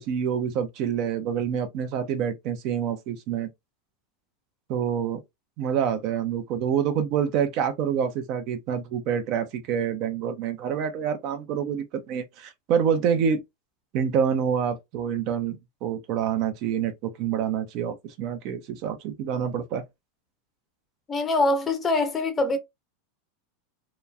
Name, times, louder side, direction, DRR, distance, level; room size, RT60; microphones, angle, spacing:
voice 1, 0.0-3.5 4.7-5.2 5.6-13.4 13.9-19.8, right 8 dB, 50° right, 0.6 m, -27 dB
voice 2, 21.1-22.6, left 2 dB, 25° left, 0.7 m, -23 dB
3.0 x 2.2 x 2.3 m
supercardioid pair, 125°, 0 cm